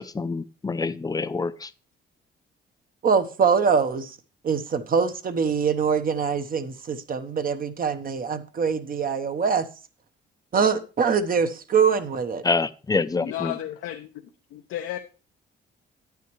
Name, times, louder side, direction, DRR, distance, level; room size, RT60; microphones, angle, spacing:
voice 1, 0.0-1.7 12.4-13.5, left 4 dB, 20° left, 0.5 m, -26 dB
voice 2, 3.0-4.2 4.4-9.7 10.5-12.4, right 6 dB, 45° right, 1.0 m, -23 dB
voice 3, 13.2-15.0, left 12 dB, 90° left, 0.7 m, -34 dB
9.3 x 9.3 x 3.1 m
cardioid pair, 90°, 20 cm